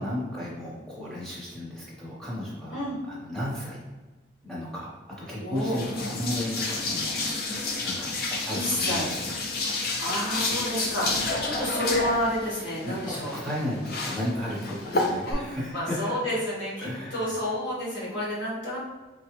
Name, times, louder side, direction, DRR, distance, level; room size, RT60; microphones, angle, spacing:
voice 1, 0.0-3.8 4.4-9.2 11.0-11.2 12.8-16.2 16.8-17.3, left 1 dB, 5° left, -7 dB, 0.9 m, -34 dB
voice 2, 5.3-5.8 8.5-9.1 9.7-13.7 15.2-15.4 15.7-18.8, equal, 85° left, -8 dB, 1.4 m, -30 dB
sound 1, 5.6-15.3, left 3 dB, 50° left, 0.5 m, -30 dB
4.1 x 2.3 x 3.0 m, 1.2 s
head